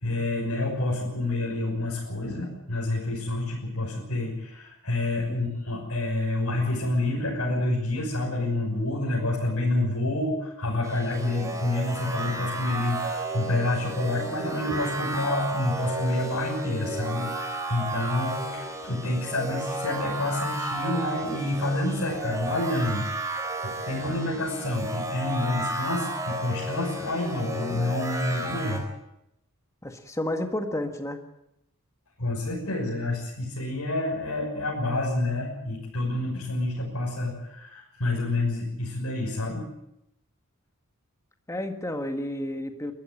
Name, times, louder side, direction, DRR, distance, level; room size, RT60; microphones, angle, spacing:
voice 1, 0.0-28.8 32.2-39.6, left 2 dB, 70° left, -3 dB, 6.3 m, -28 dB
sound 1, 10.8-28.8, right 2 dB, 15° right, 3.6 m, -33 dB
voice 2, 29.8-31.2 41.5-42.9, left 1 dB, 15° left, 6 dB, 1.6 m, -31 dB
23.0 x 13.5 x 9.1 m, 0.82 s
head